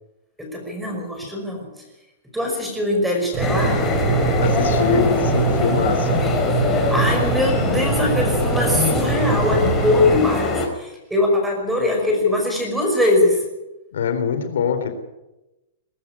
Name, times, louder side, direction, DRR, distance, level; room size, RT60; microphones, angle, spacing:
voice 1, 0.4-1.7 2.3-3.8 6.9-13.5, left 2 dB, 5° right, 1 dB, 5.5 m, -21 dB
sound 1, 3.3-10.2, right 5 dB, 35° right, 4.9 m, -23 dB
sound 2, 3.4-10.7, left 4 dB, 15° left, 3.8 m, -23 dB
voice 2, 4.4-6.2 13.9-14.9, left 6 dB, 85° left, 8 dB, 3.8 m, -23 dB
21.0 x 13.0 x 9.7 m, 0.97 s
hypercardioid pair, 160°, 0 cm